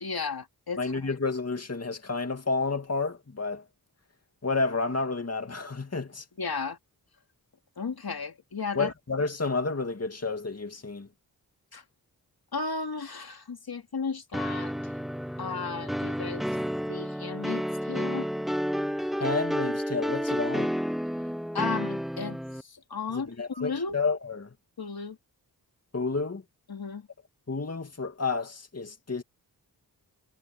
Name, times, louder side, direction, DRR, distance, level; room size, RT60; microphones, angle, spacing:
voice 1, 0.0-0.9 6.4-6.8 7.8-8.9 11.7-11.8 12.5-14.7 15.4-16.4 16.9-18.3 21.5-24.0 24.8-25.2 26.7-27.1, left 4 dB, 60° left, 2.7 m, -34 dB
voice 2, 0.8-3.6 4.4-6.3 8.7-11.1 19.2-20.8 23.1-24.5 25.9-26.4 27.5-29.2, left 4 dB, 35° left, 2.4 m, -30 dB
sound 1, 14.3-22.6, equal, ahead, 0.7 m, -31 dB
cardioid pair, 50°, 41 cm